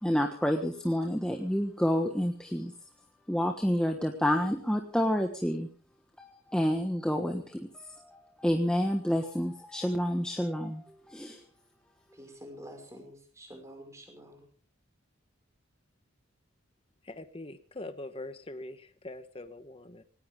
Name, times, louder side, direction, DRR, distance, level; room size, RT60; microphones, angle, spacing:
voice 1, 0.0-2.7 3.3-5.7 6.2-11.4, equal, 5° left, 3 dB, 1.4 m, -29 dB
voice 2, 12.1-14.5, equal, 15° right, 4 dB, 5.6 m, -48 dB
voice 3, 17.0-20.0, left 2 dB, 25° left, 9 dB, 1.2 m, -43 dB
19.0 x 18.5 x 3.7 m, 0.40 s
head